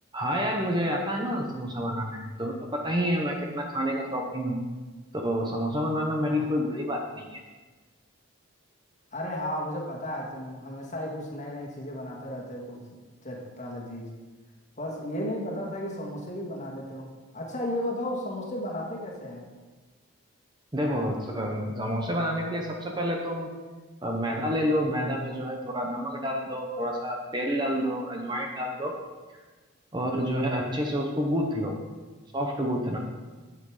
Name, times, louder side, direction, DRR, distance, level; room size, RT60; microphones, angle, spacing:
voice 1, 0.1-4.6 5.1-7.4 20.7-23.5 24.0-28.9 29.9-31.7 32.3-33.0, equal, 20° right, 1 dB, 1.0 m, -29 dB
voice 2, 9.1-12.8 13.2-14.1 14.8-17.1 17.3-19.5, left 1 dB, 35° left, -2 dB, 2.0 m, -34 dB
11.0 x 7.7 x 5.0 m, 1.3 s
head